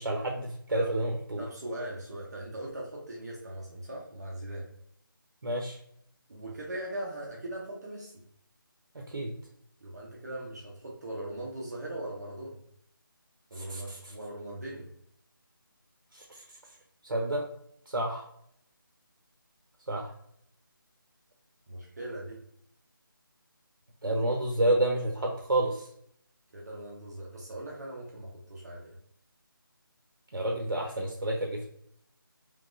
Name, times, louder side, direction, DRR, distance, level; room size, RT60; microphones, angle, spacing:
voice 1, 0.0-1.4 5.4-5.8 9.1-9.3 13.5-14.0 16.1-16.4 17.0-17.4 17.9-18.3 19.9-20.1 24.0-25.9 30.3-31.7, right 1 dB, 85° right, 0 dB, 0.7 m, -29 dB
voice 2, 1.4-4.7 6.3-8.2 9.8-12.6 13.5-14.9 21.7-22.4 26.5-29.0, right 1 dB, 45° right, -3 dB, 0.8 m, -40 dB
3.5 x 3.0 x 2.5 m, 0.71 s
figure-of-eight pair, 170°, 12 cm